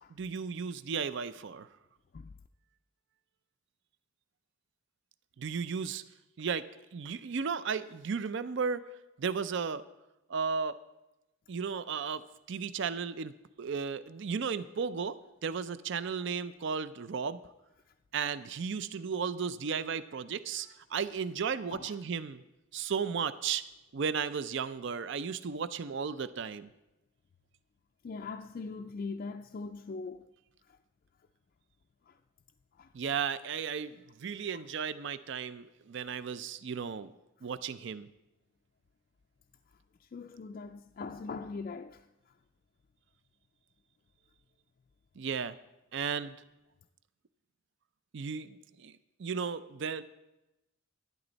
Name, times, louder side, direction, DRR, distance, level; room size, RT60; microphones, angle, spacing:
voice 1, 0.1-1.7 5.4-6.0 6.4-6.7 6.9-8.8 9.2-9.8 10.3-10.8 11.5-12.2 12.5-17.4 18.1-22.4 22.7-23.6 23.9-26.7 32.9-37.1 37.4-38.1 45.2-45.5 45.9-46.4 48.1-48.9 49.2-50.0, right 6 dB, 60° right, 0.5 m, -34 dB
voice 2, 28.0-30.3 32.1-32.2 32.8-32.9 40.1-42.0, left 4 dB, 45° left, 0.3 m, -41 dB
12.0 x 10.5 x 4.0 m
head